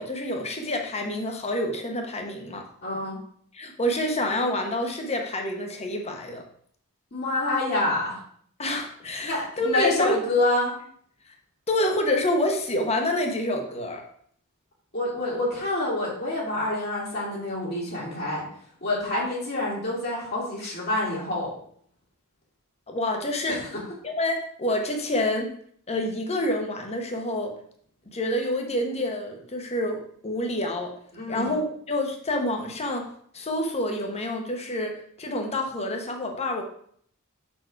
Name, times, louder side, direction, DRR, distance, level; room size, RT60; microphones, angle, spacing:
voice 1, 0.0-2.7 3.5-6.4 8.6-10.2 11.7-14.0 22.9-23.6 24.0-25.5 25.9-27.5 28.1-30.9 31.3-33.1 33.3-36.6, left 1 dB, 30° left, 2 dB, 1.1 m, -27 dB
voice 2, 2.8-3.2 7.1-8.2 9.2-10.8 14.9-18.4 18.8-21.5 23.5-23.8 31.1-31.5, left 2 dB, 50° left, -5 dB, 2.0 m, -27 dB
6.1 x 4.5 x 4.6 m, 0.62 s
head